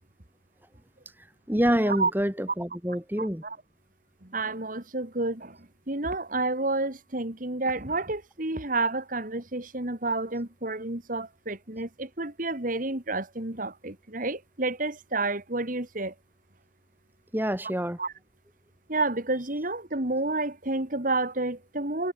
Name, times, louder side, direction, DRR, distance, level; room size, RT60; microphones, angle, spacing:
voice 1, 1.5-3.4 17.3-18.0, equal, 10° right, 2.9 m, -26 dB
voice 2, 3.2-3.6 4.2-16.1 18.0-18.1 18.9-22.1, right 2 dB, 45° right, 2.4 m, -30 dB
head